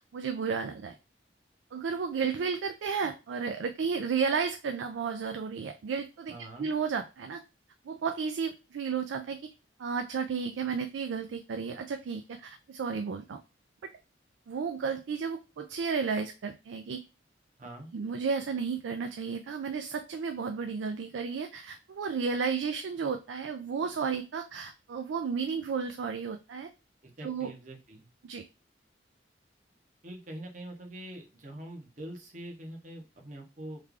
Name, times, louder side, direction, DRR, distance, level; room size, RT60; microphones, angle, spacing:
voice 1, 0.1-1.0 1.7-6.3 6.6-7.4 7.8-9.5 9.8-13.4 13.8-13.9 14.5-17.0 17.9-26.7 27.2-27.5 28.2-28.4, right 5 dB, 85° right, 7 dB, 0.4 m, -33 dB
voice 2, 6.3-6.7 17.6-17.9 27.0-28.1 30.0-33.8, right 1 dB, 45° right, 2 dB, 0.8 m, -44 dB
3.2 x 2.3 x 3.6 m, 0.28 s
head